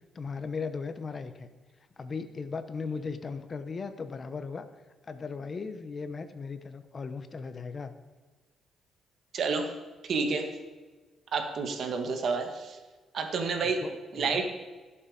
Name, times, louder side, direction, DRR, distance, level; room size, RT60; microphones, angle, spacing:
voice 1, 0.1-1.5 2.0-4.7 5.0-7.9 13.6-14.4, left 4 dB, 40° left, 11 dB, 0.9 m, -37 dB
voice 2, 9.3-9.7 10.0-10.5 11.3-12.8 13.1-13.8 14.1-14.4, right 4 dB, 60° right, 5 dB, 1.9 m, -29 dB
17.0 x 7.3 x 5.1 m, 1.3 s
cardioid pair, 90°, 0 cm